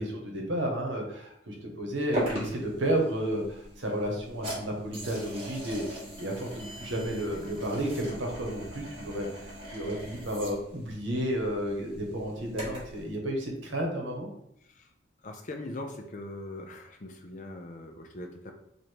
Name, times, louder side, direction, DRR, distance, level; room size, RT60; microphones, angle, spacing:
voice 1, 0.0-9.3 9.7-14.3, right 1 dB, 70° right, 1 dB, 1.0 m, -32 dB
sound 1, 2.1-13.0, right 1 dB, 30° right, 1.5 m, -40 dB
voice 2, 15.2-18.5, left 2 dB, 40° left, 4 dB, 0.5 m, -41 dB
3.2 x 2.7 x 4.5 m, 0.74 s
head